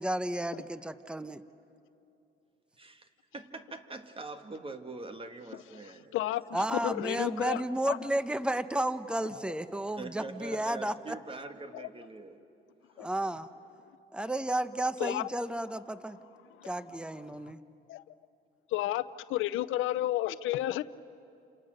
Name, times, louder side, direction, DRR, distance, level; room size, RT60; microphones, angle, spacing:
voice 1, 0.0-1.4 6.5-10.9 13.0-13.5 14.1-16.2 16.6-17.6, right 1 dB, 5° right, 12 dB, 0.9 m, -32 dB
voice 2, 2.8-6.2 9.3-9.4 10.0-12.4, right 3 dB, 25° right, 7 dB, 1.9 m, -43 dB
voice 3, 6.1-8.0 11.7-11.9 13.0-13.1 15.0-15.3 16.4-16.7 17.2-17.5 17.9-18.0 18.7-19.0 19.3-20.8, left 14 dB, 90° left, 16 dB, 0.6 m, -32 dB
30.0 x 27.5 x 6.6 m, 2.7 s
cardioid pair, 90°, 20 cm